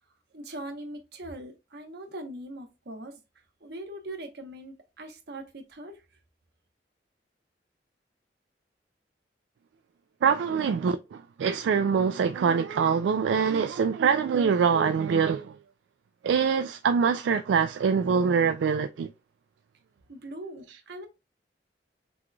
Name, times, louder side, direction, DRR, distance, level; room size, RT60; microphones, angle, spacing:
voice 1, 0.3-3.2 3.6-6.0 20.1-21.1, right 1 dB, 65° right, 1.1 m, -41 dB
voice 2, 10.2-15.5 16.2-19.1, right 6 dB, 80° right, 0.3 m, -24 dB
6.0 x 3.1 x 2.3 m
head